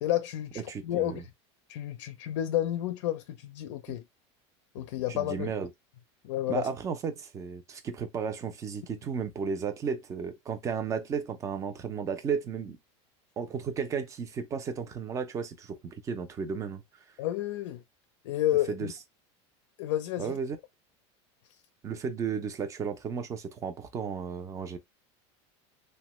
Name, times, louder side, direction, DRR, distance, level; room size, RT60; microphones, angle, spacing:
voice 1, 0.0-1.2 1.7-4.0 4.7-5.5 6.2-6.7 17.2-17.8 18.2-18.9 19.8-20.4, left 13 dB, 80° left, 0.4 m, -31 dB
voice 2, 0.7-1.2 5.1-5.7 6.5-12.8 13.4-16.8 18.7-18.9 20.2-20.6 21.8-24.8, right 6 dB, 20° right, 0.5 m, -34 dB
2.9 x 2.2 x 2.9 m
supercardioid pair, 145°, 15 cm